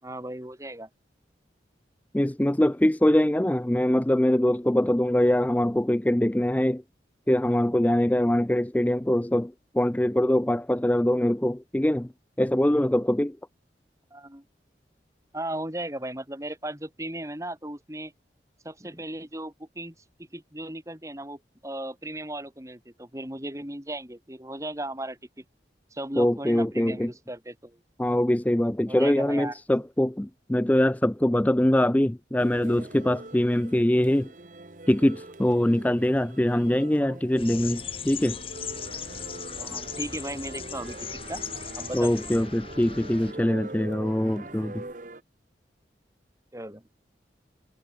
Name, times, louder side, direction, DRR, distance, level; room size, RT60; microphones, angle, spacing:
voice 1, 0.0-0.9 14.1-14.4 15.3-18.1 18.6-20.0 20.3-25.4 25.9-27.8 28.9-29.5 37.0-37.2 39.6-41.4 41.8-42.3 46.5-46.8, right 1 dB, 15° right, 3.8 m, -36 dB
voice 2, 2.1-6.8 7.3-12.1 12.4-13.4 26.2-27.1 28.0-34.3 34.9-38.4 41.9-44.8, left 1 dB, 10° left, 0.4 m, -23 dB
sound 1, 32.4-45.2, right 2 dB, 45° right, 1.3 m, -43 dB
sound 2, 37.4-43.3, left 7 dB, 30° left, 2.6 m, -38 dB
head